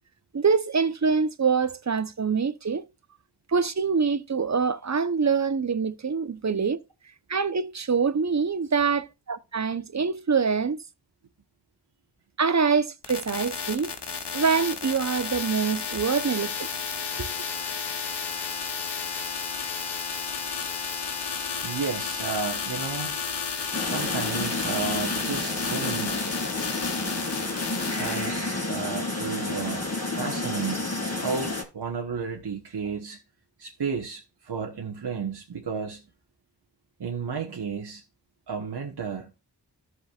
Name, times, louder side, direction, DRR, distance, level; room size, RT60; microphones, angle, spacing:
voice 1, 0.3-2.8 3.5-6.8 7.3-10.8 12.4-13.9 14.3-16.5 17.2-17.3, right 5 dB, 45° right, 0.9 m, -25 dB
sound 1, 13.0-28.3, left 6 dB, 85° left, 1.2 m, -32 dB
voice 2, 21.6-23.1 23.8-26.3 27.9-33.2 33.6-36.0 37.0-38.0 38.5-39.3, right 5 dB, 70° right, 1.3 m, -33 dB
sound 2, 23.7-31.6, left 2 dB, 40° left, 3.0 m, -30 dB
13.5 x 6.3 x 2.4 m
cardioid pair, 45°, 40 cm